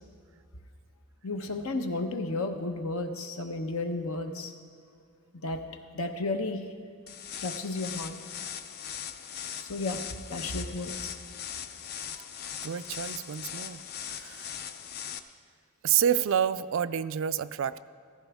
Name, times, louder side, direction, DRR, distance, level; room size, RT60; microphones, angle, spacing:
voice 1, 1.2-4.5 5.3-5.6 5.9-6.7 7.4-8.1 9.6-10.0 10.3-11.1, left 2 dB, 70° left, 6 dB, 0.9 m, -33 dB
sound 1, 7.1-15.2, left 8 dB, 45° left, 0.5 m, -39 dB
voice 2, 12.6-13.8 14.1-14.5 15.8-17.8, right 9 dB, 60° right, 14 dB, 0.3 m, -28 dB
14.5 x 14.5 x 3.5 m, 2.3 s
head